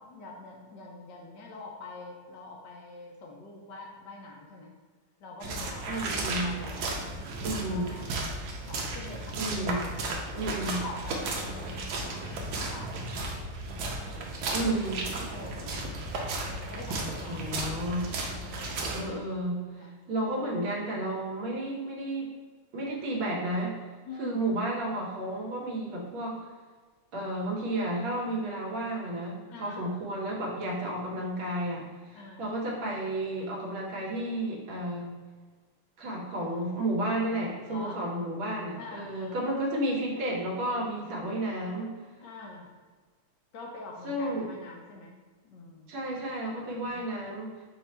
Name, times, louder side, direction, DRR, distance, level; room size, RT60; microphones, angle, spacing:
voice 1, 0.0-4.7 5.2-6.2 6.4-6.9 7.5-8.2 8.7-9.7 10.6-11.6 11.9-12.0 12.5-13.1 14.0-14.6 15.2-15.9 16.4-17.6 18.3-18.9 19.8-20.0 24.0-24.4 29.5-30.0 32.1-32.5 37.7-38.0 38.8-39.5 42.2-42.7 43.5-45.1 45.4-46.0 46.8-47.0, left 3 dB, 70° left, 0 dB, 1.3 m, -45 dB
sound 1, 5.4-19.0, right 2 dB, 75° right, 1.3 m, -34 dB
voice 2, 5.9-6.5 7.4-7.9 9.4-9.9 10.3-10.8 14.5-15.0 17.3-18.1 18.9-22.3 22.7-23.8 24.2-26.5 27.1-35.1 36.0-42.0 44.0-44.5 45.9-47.6, right 1 dB, 90° right, -2 dB, 1.8 m, -32 dB
4.6 x 2.5 x 4.2 m, 1.4 s
omnidirectional pair, 2.1 m